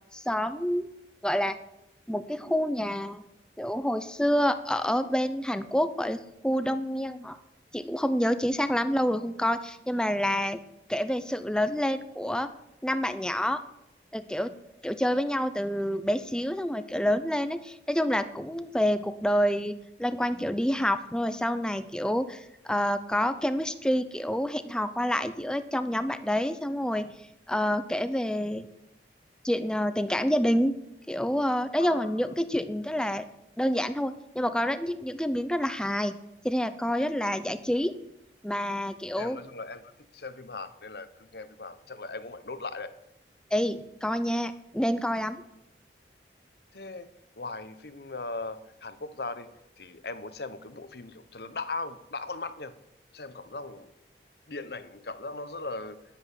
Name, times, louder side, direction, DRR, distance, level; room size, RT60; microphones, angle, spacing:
voice 1, 0.1-0.9 1.2-1.6 2.1-3.2 3.6-7.4 7.7-10.6 10.9-12.5 12.8-13.6 14.1-14.5 14.8-27.1 27.5-28.7 29.4-30.7 31.1-33.2 33.6-36.2 36.4-37.9 38.4-39.4 43.5-45.4, equal, 5° left, 11 dB, 0.6 m, -28 dB
voice 2, 31.8-32.3 37.3-37.4 39.2-42.9 46.7-47.1 47.4-49.5 49.8-52.7 53.1-53.9 54.5-56.0, left 3 dB, 65° left, 12 dB, 0.9 m, -39 dB
10.5 x 10.0 x 8.3 m, 0.88 s
head